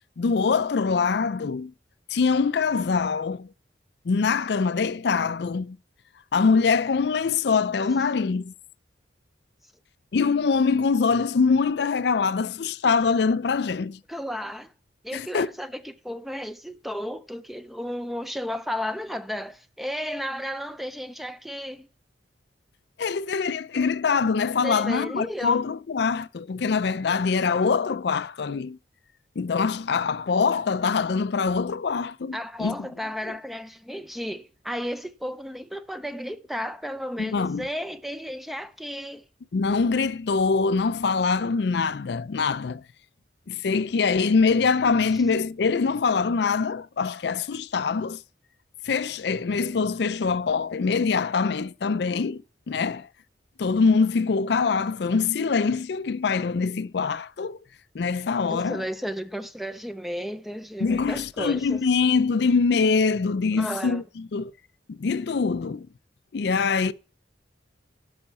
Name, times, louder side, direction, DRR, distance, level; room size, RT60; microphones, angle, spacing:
voice 1, 0.2-1.7 2.1-3.5 4.1-5.8 6.3-8.5 10.1-14.0 15.1-15.5 23.0-28.8 29.4-32.8 33.3-33.4 37.2-37.7 39.5-42.8 43.5-48.2 48.8-53.1 53.6-57.6 57.9-58.8 60.8-64.5 64.9-65.9 66.3-66.9, left 5 dB, 65° left, 0.4 m, -24 dB
voice 2, 14.1-14.7 15.0-21.9 24.6-25.6 32.3-39.2 58.5-61.8 63.6-64.0, equal, ahead, 0.4 m, -33 dB
11.5 x 5.7 x 6.6 m
head